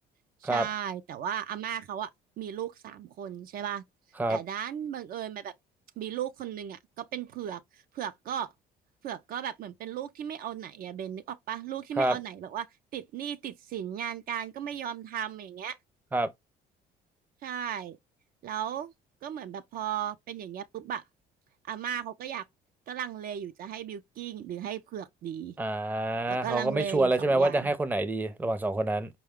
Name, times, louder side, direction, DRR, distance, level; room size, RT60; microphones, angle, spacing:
voice 1, 0.4-2.1 2.4-3.8 4.3-5.5 6.0-8.5 9.0-12.7 12.9-15.8 17.4-18.0 18.4-18.9 19.2-21.0 21.7-22.4 22.9-25.6 26.3-27.7, right 9 dB, 60° right, 0.4 m, -36 dB
voice 2, 25.6-29.1, right 2 dB, 10° right, 0.5 m, -27 dB
4.7 x 2.2 x 3.5 m
cardioid pair, 110°, 17 cm